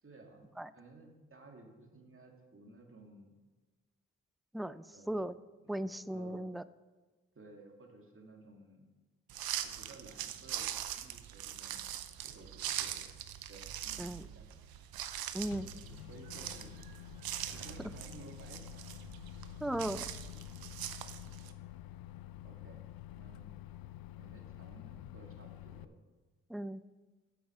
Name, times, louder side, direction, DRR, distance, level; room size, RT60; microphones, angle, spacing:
voice 1, 0.0-3.3 4.9-5.3 5.6-6.5 7.3-8.8 9.6-10.7 11.0-11.8 12.2-12.5 12.8-13.1 13.5-14.4 15.6-16.8 17.5-19.1 20.2-20.4 22.4-22.8 23.2-23.5 24.2-26.0, right 2 dB, 35° right, 2 dB, 2.3 m, -56 dB
voice 2, 4.5-5.3 5.7-6.6 14.0-14.2 15.3-15.7 19.6-20.0 26.5-26.8, right 1 dB, ahead, 15 dB, 0.3 m, -37 dB
sound 1, 9.3-21.5, right 11 dB, 80° right, 0.7 m, -42 dB
Microwave oven, 15.5-25.8, left 14 dB, 75° left, 0.5 m, -49 dB
8.7 x 7.9 x 4.9 m, 1.3 s
supercardioid pair, 40°, 36 cm